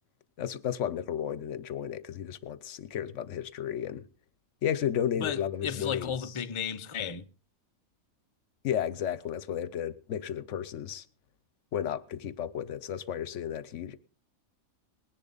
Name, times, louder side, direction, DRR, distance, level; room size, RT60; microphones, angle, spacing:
voice 1, 0.4-4.0 4.6-6.1 8.6-11.0 11.7-14.0, left 9 dB, 65° left, 1.1 m, -33 dB
voice 2, 5.2-7.2, left 7 dB, 30° left, 0.6 m, -34 dB
20.0 x 10.5 x 4.0 m
omnidirectional pair, 1.5 m